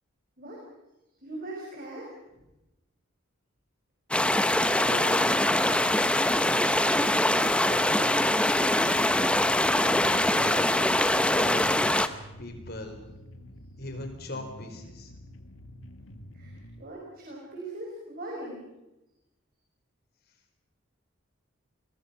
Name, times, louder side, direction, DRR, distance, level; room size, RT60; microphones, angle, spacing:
voice 1, 1.2-2.1 16.3-18.6, right 1 dB, 45° right, -2 dB, 5.4 m, -40 dB
sound 1, 4.1-12.1, left 1 dB, 5° left, 0.9 m, -23 dB
voice 2, 4.8-5.3 7.6-8.4 10.0-10.8 11.3-12.0 12.4-13.0 13.8-15.1, left 2 dB, 50° left, 5 dB, 4.5 m, -40 dB
sound 2, 8.8-16.8, left 1 dB, 75° left, 1.9 m, -48 dB
29.5 x 21.5 x 5.8 m, 0.97 s
head